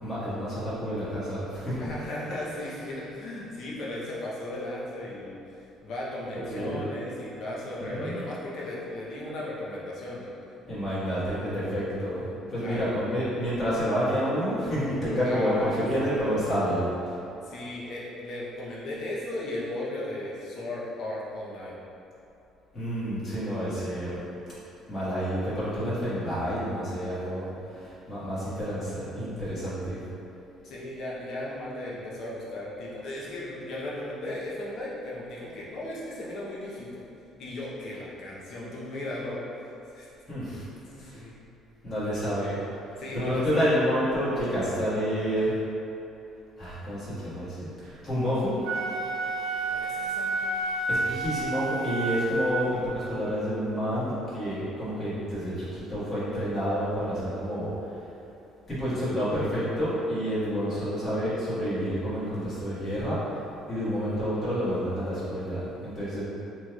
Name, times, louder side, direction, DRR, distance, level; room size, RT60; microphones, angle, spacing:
voice 1, 0.0-1.9 6.3-6.8 7.8-8.2 10.7-12.2 12.5-17.2 22.7-24.2 24.9-27.5 27.7-30.0 40.3-40.6 41.0-41.2 41.8-42.6 43.1-45.5 46.6-47.7 48.0-48.5 50.9-57.9 58.7-63.4 63.7-66.2, equal, 25° left, -12 dB, 1.5 m, -29 dB
voice 2, 1.8-5.3 5.8-10.3 12.6-12.8 15.2-16.3 17.4-21.8 30.6-37.0 37.4-39.4 39.9-40.1 40.9-41.3 43.0-43.7 49.7-50.4, left 1 dB, 50° left, -5 dB, 0.8 m, -36 dB
Wind instrument woodwind instrument, 48.5-52.9, right 2 dB, 80° right, 0.4 m, -30 dB
4.4 x 3.1 x 2.3 m, 2.9 s
cardioid pair, 160°, 0 cm